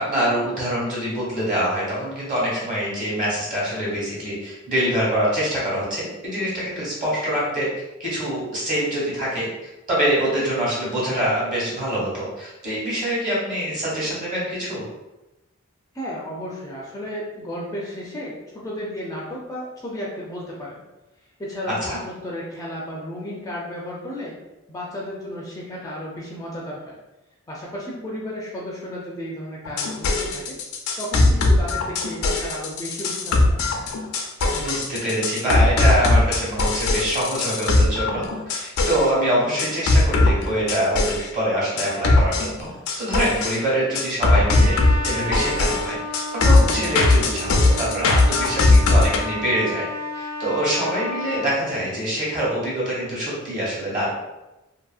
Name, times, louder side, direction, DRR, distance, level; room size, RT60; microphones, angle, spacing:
voice 1, 0.0-7.7 8.0-9.5 9.9-14.8 21.8-22.0 34.5-42.7 42.9-54.1, right 1 dB, 35° right, -7 dB, 1.2 m, -25 dB
voice 2, 15.9-20.8 21.4-24.3 24.7-26.9 27.5-30.6 31.0-33.4, equal, 15° left, -4 dB, 0.4 m, -33 dB
sound 1, 29.7-39.1 39.6-41.3 41.8-43.6 44.0-49.2, left 2 dB, 75° left, 0.4 m, -19 dB
Trumpet, 44.4-51.5, left 1 dB, 75° right, 0.6 m, -32 dB
2.7 x 2.6 x 2.3 m, 1.0 s
head